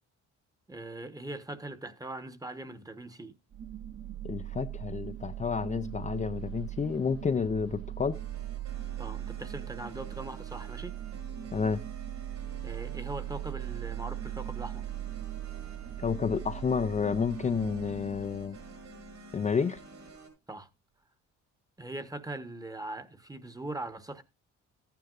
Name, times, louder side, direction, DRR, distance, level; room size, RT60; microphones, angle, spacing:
voice 1, 0.7-3.4 9.0-10.9 12.6-14.9 20.5-20.7 21.8-24.2, right 2 dB, 10° right, 1.1 m, -41 dB
sound 1, 3.5-19.4, right 13 dB, 50° right, 1.1 m, -40 dB
voice 2, 4.2-8.2 11.5-11.8 16.0-18.6 19.3-19.8, left 6 dB, 25° left, 0.5 m, -30 dB
sound 2, 8.1-20.3, right 2 dB, 65° right, 6.0 m, -50 dB
14.0 x 9.3 x 2.5 m
cardioid pair, 90°, 30 cm